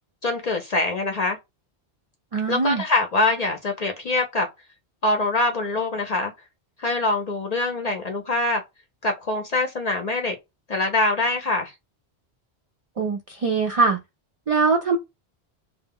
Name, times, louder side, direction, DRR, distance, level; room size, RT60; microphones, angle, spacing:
voice 1, 0.2-1.4 2.5-4.5 5.0-6.3 6.8-8.6 9.0-10.4 10.7-11.7, left 2 dB, 55° left, 0.5 m, -24 dB
voice 2, 2.3-2.8 13.0-14.0 14.5-15.0, right 4 dB, 60° right, 0.3 m, -22 dB
2.2 x 2.0 x 3.5 m
omnidirectional pair, 1.1 m